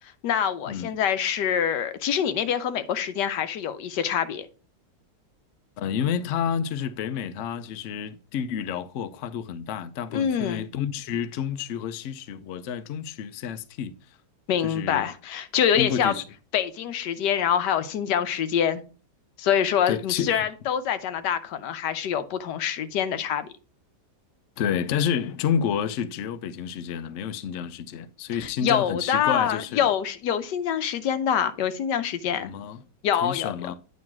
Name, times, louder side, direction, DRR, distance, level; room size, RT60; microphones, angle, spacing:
voice 1, 0.2-4.5 10.1-10.7 14.5-16.1 16.5-18.8 19.4-23.5 28.4-32.5 33.0-33.5, left 8 dB, 85° left, 1.4 m, -25 dB
voice 2, 5.8-13.9 14.6-15.1 15.7-16.2 19.9-20.5 24.6-29.9 32.3-32.8 33.2-33.7, left 8 dB, 65° left, 0.8 m, -29 dB
9.2 x 3.1 x 5.8 m
omnidirectional pair, 1.8 m